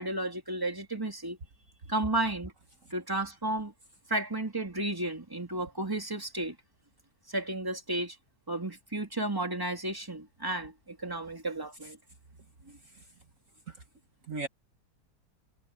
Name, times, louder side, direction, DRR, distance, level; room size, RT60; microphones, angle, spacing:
voice 1, 0.0-1.4 1.9-2.5 2.9-3.7 4.1-6.5 7.3-8.2 8.5-12.0, right 1 dB, 15° right, 3.0 m, -33 dB
voice 2, 12.7-13.1 13.7-13.8 14.2-14.5, right 3 dB, 55° right, 1.8 m, -40 dB
omnidirectional pair, 1.7 m